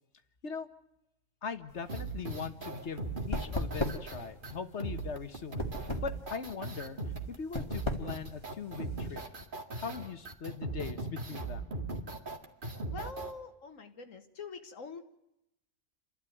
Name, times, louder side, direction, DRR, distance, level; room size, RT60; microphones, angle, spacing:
voice 1, 1.4-7.0 7.3-9.2 9.8-11.8, left 5 dB, 55° left, 10 dB, 1.6 m, -40 dB
sound 1, 1.7-9.3, left 1 dB, 20° left, 2.0 m, -38 dB
sound 2, 1.9-13.3, right 2 dB, 40° right, 2.2 m, -39 dB
voice 2, 12.9-15.0, left 4 dB, 75° left, 6 dB, 1.8 m, -44 dB
29.5 x 12.5 x 9.3 m, 0.87 s
omnidirectional pair, 1.4 m